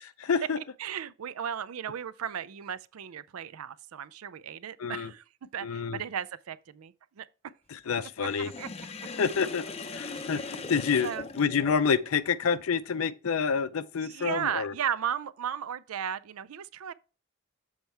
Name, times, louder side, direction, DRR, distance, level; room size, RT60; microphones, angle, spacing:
voice 1, 0.2-0.6 4.8-5.1 5.6-6.0 7.7-8.5 9.2-9.6 9.9-11.1 11.4-14.7, left 6 dB, 75° left, 0.5 m, -28 dB
voice 2, 0.8-5.2 5.5-7.3 8.0-8.7 10.1-10.7 11.0-11.3 14.0-16.9, right 8 dB, 80° right, 0.4 m, -35 dB
Sink (filling or washing), 8.2-12.1, left 3 dB, 30° left, 0.5 m, -40 dB
7.3 x 4.5 x 4.4 m
head